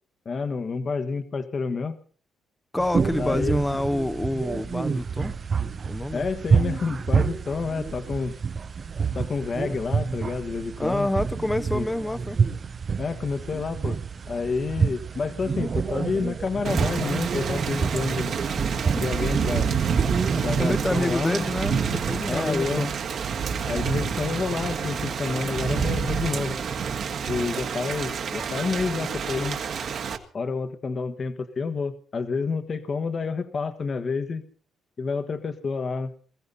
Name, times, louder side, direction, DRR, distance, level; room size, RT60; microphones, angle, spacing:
voice 1, 0.2-2.0 3.2-3.6 6.1-8.4 9.1-11.1 11.7-11.9 13.0-14.0 14.3-18.4 18.9-19.7 20.4-21.4 22.3-22.9 23.7-26.6 27.3-29.6 30.3-34.5 35.0-36.1, left 4 dB, 45° left, 1.5 m, -29 dB
voice 2, 2.7-5.4 5.9-6.3 10.8-12.4 20.3-22.9, left 1 dB, 10° left, 0.9 m, -27 dB
sound 1, 2.8-20.6, right 5 dB, 40° right, 0.7 m, -28 dB
Thunder / Rain, 16.6-30.2, right 6 dB, 60° right, 1.9 m, -28 dB
21.0 x 15.5 x 4.1 m
cardioid pair, 90°, 0 cm